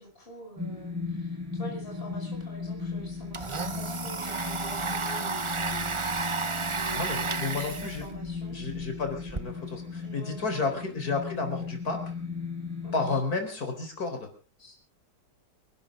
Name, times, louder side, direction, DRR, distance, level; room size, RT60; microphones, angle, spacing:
voice 1, 0.0-6.0 6.7-8.6 10.0-11.0 12.8-13.2 14.6-14.7, equal, 30° left, 0 dB, 5.6 m, -45 dB
sound 1, 0.6-13.2, left 5 dB, 10° right, 5.2 m, -37 dB
Domestic sounds home sounds, 2.8-9.4, right 4 dB, 40° right, 0.4 m, -33 dB
voice 2, 6.9-8.0 8.5-12.2 12.9-14.3, left 3 dB, 55° left, 5 dB, 4.7 m, -32 dB
28.5 x 12.0 x 3.8 m, 0.37 s
omnidirectional pair, 1.9 m